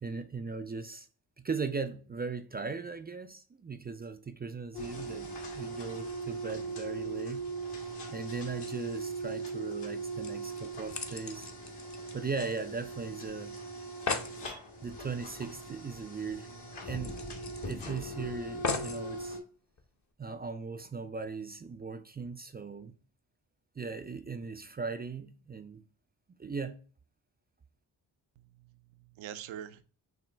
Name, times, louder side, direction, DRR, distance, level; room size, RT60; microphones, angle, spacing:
voice 1, 0.0-1.1 1.4-7.5 8.1-11.5 12.1-13.6 14.8-16.5 16.9-17.2 17.7-19.4 20.2-22.9 23.8-25.8 26.4-26.8, right 4 dB, 20° right, 0.3 m, -38 dB
sound 1, 4.7-19.4, right 3 dB, 55° left, 1.3 m, -40 dB
sound 2, 10.2-12.9 13.1-13.2 13.6-13.7 13.8-14.4 15.9-16.0 16.3-16.4 17.0-18.0 18.6-19.0 19.8-19.9, left 4 dB, 35° left, 0.8 m, -37 dB
voice 2, 28.4-29.8, right 10 dB, 70° right, 0.6 m, -45 dB
6.1 x 2.1 x 3.3 m
supercardioid pair, 40°, 49 cm